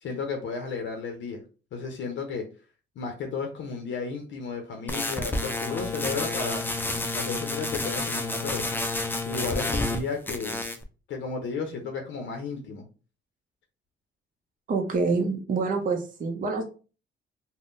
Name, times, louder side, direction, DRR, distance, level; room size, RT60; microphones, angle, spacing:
voice 1, 0.0-1.4 1.7-2.4 3.0-6.6 7.1-8.7 9.2-10.6 11.1-12.9, left 5 dB, 70° left, 4 dB, 0.6 m, -33 dB
sound 1, 4.9-10.0 10.3-10.8, left 2 dB, 10° left, 0.4 m, -30 dB
voice 2, 14.7-16.6, right 4 dB, 45° right, 3 dB, 0.6 m, -26 dB
3.6 x 2.1 x 2.5 m, 0.35 s
cardioid pair, 90°, 20 cm